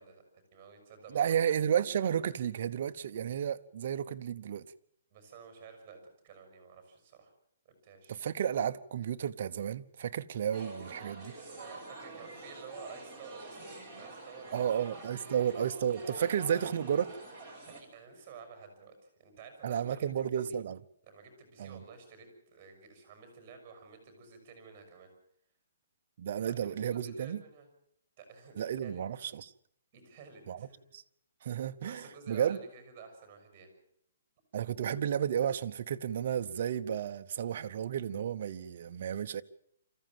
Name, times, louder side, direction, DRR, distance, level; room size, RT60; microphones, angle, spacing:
voice 1, 0.0-1.3 5.1-7.3 7.6-8.2 11.3-15.6 16.1-17.0 17.8-20.6 21.0-25.1 26.4-27.7 28.2-29.0 29.9-30.8 31.4-33.7, right 5 dB, 15° right, 6.2 m, -52 dB
voice 2, 1.1-4.7 8.1-11.3 14.5-17.1 19.6-20.8 21.6-21.8 26.2-27.4 28.6-29.5 30.5-30.6 30.9-31.0 31.4-32.6 34.5-39.4, right 9 dB, 40° right, 0.8 m, -32 dB
sound 1, 10.5-17.8, right 2 dB, 5° left, 3.6 m, -47 dB
25.0 x 14.5 x 7.6 m
hypercardioid pair, 175°, 0 cm